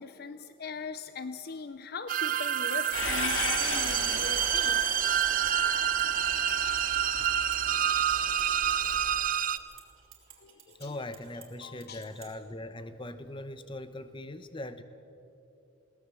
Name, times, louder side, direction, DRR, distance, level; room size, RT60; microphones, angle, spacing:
voice 1, 0.0-5.0 10.4-11.0 11.6-12.1, left 4 dB, 50° left, 11 dB, 0.6 m, -40 dB
sound 1, 2.1-9.6, right 10 dB, 40° right, 0.6 m, -28 dB
sound 2, 2.5-12.3, right 9 dB, 75° right, 3.2 m, -54 dB
Train, 2.9-9.2, left 3 dB, 70° left, 2.2 m, -37 dB
voice 2, 10.8-14.8, left 1 dB, 25° left, 11 dB, 0.9 m, -41 dB
21.5 x 18.0 x 7.6 m, 2.8 s
head